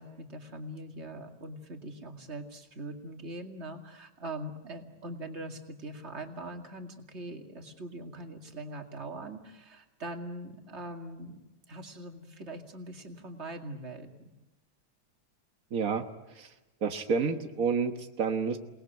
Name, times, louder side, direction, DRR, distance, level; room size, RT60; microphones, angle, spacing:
voice 1, 0.0-11.4 11.7-14.3, right 1 dB, 25° right, 4 dB, 2.0 m, -42 dB
voice 2, 15.7-16.0 16.4-16.5 16.8-18.6, right 5 dB, 90° right, 6 dB, 0.7 m, -29 dB
28.5 x 20.0 x 9.2 m, 1.1 s
omnidirectional pair, 3.6 m